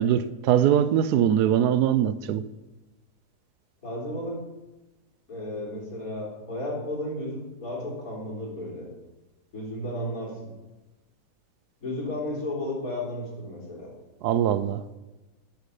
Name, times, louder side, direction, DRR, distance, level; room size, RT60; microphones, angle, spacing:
voice 1, 0.0-2.5 14.2-14.8, right 10 dB, 85° right, 1.1 m, -22 dB
voice 2, 3.8-4.4 5.3-8.9 9.5-10.5 11.8-13.9, left 1 dB, 65° left, 3.9 m, -33 dB
11.5 x 7.5 x 5.4 m
omnidirectional pair, 1.6 m